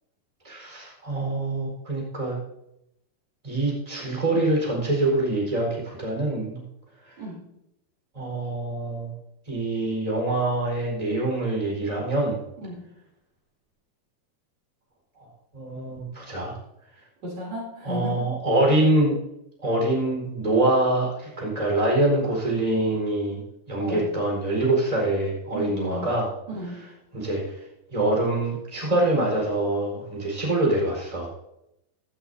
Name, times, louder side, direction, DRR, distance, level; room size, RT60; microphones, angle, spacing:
voice 1, 0.4-2.4 3.4-6.6 7.1-7.2 8.1-9.1 9.5-12.4 15.5-16.5 17.8-19.2 19.6-23.4 23.7-26.3 27.1-27.6 27.9-31.3, right 2 dB, 10° right, -2 dB, 4.4 m, -25 dB
voice 2, 17.2-18.3 23.8-24.1 25.5-26.1 26.5-26.7, equal, 60° right, -2 dB, 4.5 m, -34 dB
16.0 x 12.5 x 2.7 m, 0.83 s
omnidirectional pair, 3.9 m